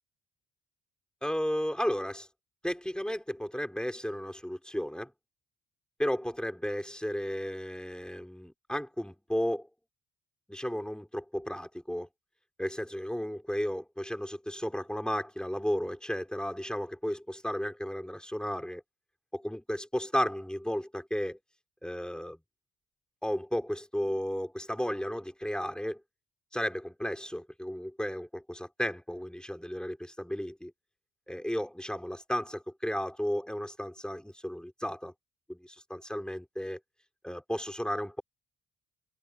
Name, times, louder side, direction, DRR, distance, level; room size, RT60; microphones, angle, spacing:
voice 1, 1.2-2.3 2.6-5.1 6.0-9.7 10.5-12.1 12.6-18.8 19.3-21.4 21.8-22.4 23.2-26.0 26.5-30.7 31.3-35.1 35.5-36.8 37.2-38.2, equal, 5° left, 5.8 m, -34 dB
cardioid pair, 90°, 30 cm